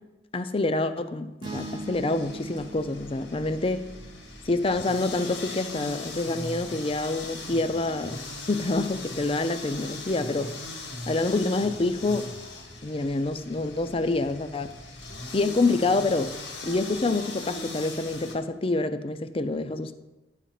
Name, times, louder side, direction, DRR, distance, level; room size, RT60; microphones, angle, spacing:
voice 1, 0.3-3.8 4.5-10.5 11.1-12.3 12.8-14.7 15.3-16.3 16.6-19.9, left 2 dB, 30° left, 10 dB, 0.5 m, -27 dB
sound 1, 1.4-18.4, left 2 dB, 85° left, 1.7 m, -39 dB
sound 2, 1.4-5.7, right 2 dB, 25° right, 0.7 m, -42 dB
11.0 x 4.1 x 7.5 m, 1.0 s
head